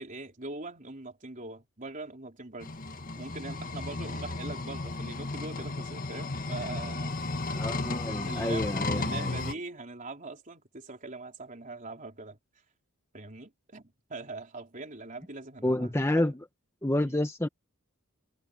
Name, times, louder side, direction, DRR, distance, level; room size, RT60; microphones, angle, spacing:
voice 1, 0.0-2.7 3.2-7.2 8.0-12.4 13.1-16.3 17.0-17.2, right 3 dB, 35° right, 4.0 m, -42 dB
sound 1, 2.6-9.5, left 2 dB, 40° left, 1.6 m, -34 dB
voice 2, 7.5-9.4 15.6-16.3 16.8-17.5, left 1 dB, 10° left, 1.0 m, -29 dB
head